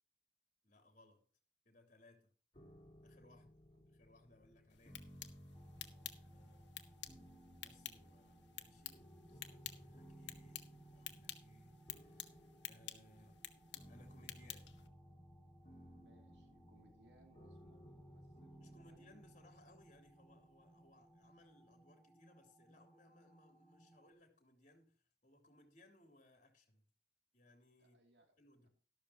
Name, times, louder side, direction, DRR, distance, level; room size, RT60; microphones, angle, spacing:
voice 1, 0.6-1.2 1.6-2.3 3.0-3.5 3.8-5.0 6.1-6.7 7.6-13.4 13.9-14.7 18.6-26.8 27.3-28.0 28.4-28.7, left 1 dB, 45° left, 3.1 m, -67 dB
sound 1, 2.5-21.5, equal, 30° left, 4.0 m, -60 dB
sound 2, 4.7-14.9, left 11 dB, 80° left, 1.4 m, -52 dB
sound 3, 5.5-24.1, right 1 dB, 5° left, 1.1 m, -67 dB
voice 2, 5.8-6.2 15.9-19.2 27.8-28.4, right 1 dB, 70° right, 2.6 m, -70 dB
13.0 x 12.5 x 2.9 m
head